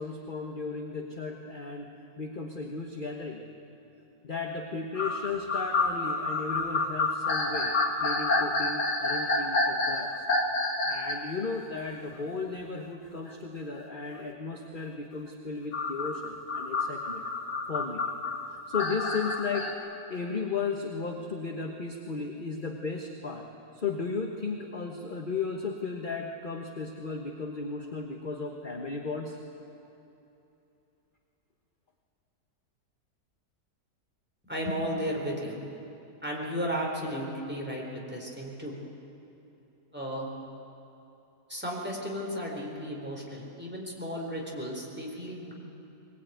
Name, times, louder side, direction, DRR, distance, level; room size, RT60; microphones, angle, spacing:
voice 1, 0.0-3.4 4.2-10.3 10.8-17.2 17.7-18.1 18.7-23.5 23.7-29.4, left 4 dB, 35° left, 2 dB, 1.3 m, -35 dB
sound 1, 4.9-11.3 11.8-11.9 13.3-13.4 15.7-19.7, left 3 dB, 75° left, 2.5 m, -29 dB
voice 2, 34.4-35.6 36.2-38.7 39.9-40.3 41.5-45.5, equal, 5° right, -2 dB, 4.0 m, -34 dB
21.5 x 20.0 x 9.3 m, 2.9 s
omnidirectional pair, 1.8 m